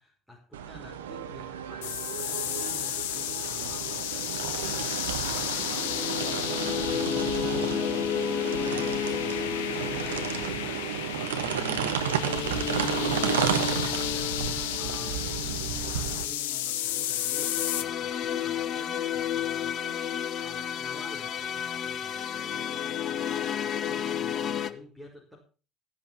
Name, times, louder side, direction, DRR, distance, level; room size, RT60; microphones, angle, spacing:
voice 1, 0.0-15.3 15.8-25.4, left 1 dB, 5° right, -1 dB, 5.0 m, -50 dB
sound 1, 0.5-16.2, right 9 dB, 75° right, 1.2 m, -32 dB
sound 2, 1.8-17.8, left 12 dB, 70° left, 0.9 m, -33 dB
sound 3, 5.4-24.7, left 9 dB, 50° left, 1.2 m, -33 dB
15.0 x 11.0 x 5.7 m, 0.37 s
figure-of-eight pair, 60°, 0 cm